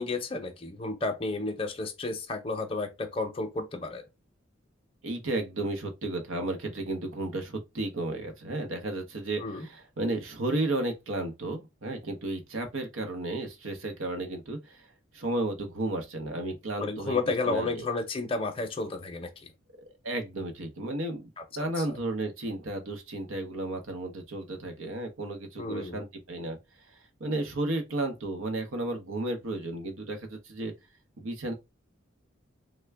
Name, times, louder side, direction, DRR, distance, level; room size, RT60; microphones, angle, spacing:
voice 1, 0.0-4.0 9.4-9.7 16.8-19.5 21.9-22.0 25.6-26.0, left 3 dB, 25° left, 0.6 m, -32 dB
voice 2, 5.0-14.9 15.1-17.2 17.4-17.9 20.0-21.3 21.6-26.6 27.2-30.7 31.2-31.5, right 2 dB, 80° right, 0.8 m, -33 dB
3.3 x 2.2 x 3.3 m
head